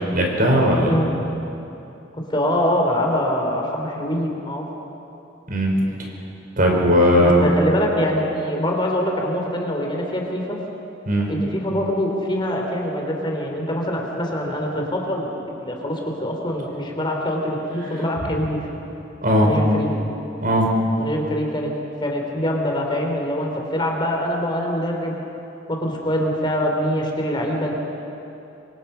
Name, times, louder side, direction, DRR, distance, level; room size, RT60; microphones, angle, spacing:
voice 1, 0.1-0.9 5.5-5.7 6.6-7.5 11.0-11.3 19.2-19.5 20.4-20.7, equal, 50° right, -1 dB, 5.1 m, -17 dB
voice 2, 2.3-4.7 7.2-10.6 11.3-15.3 15.6-18.6 19.4-20.0 21.0-21.7 22.0-25.2 25.7-27.8, equal, 25° left, 0 dB, 3.3 m, -24 dB
27.0 x 24.5 x 5.7 m, 2.9 s
head